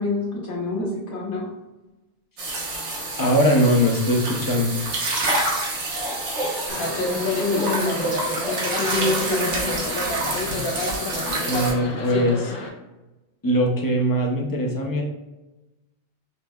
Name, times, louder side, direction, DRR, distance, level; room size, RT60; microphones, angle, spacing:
voice 1, 0.0-1.5 7.0-8.1 8.8-9.7, left 2 dB, 85° left, -5 dB, 1.4 m, -26 dB
sound 1, 2.4-11.7, right 2 dB, 75° right, 1.2 m, -27 dB
voice 2, 3.2-4.8 11.4-12.5 13.4-15.0, equal, 25° left, 0 dB, 0.5 m, -21 dB
sound 2, 6.7-12.7, left 3 dB, 60° left, 0.8 m, -29 dB
5.5 x 3.2 x 2.2 m, 1.0 s
omnidirectional pair, 1.2 m